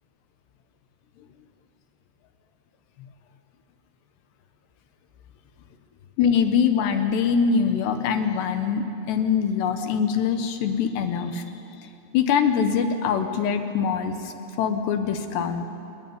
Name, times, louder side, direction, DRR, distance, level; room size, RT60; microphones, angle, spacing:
voice 1, 6.2-11.4 12.1-15.7, left 6 dB, 70° left, 7 dB, 3.1 m, -23 dB
26.0 x 21.5 x 9.5 m, 2.8 s
omnidirectional pair, 5.6 m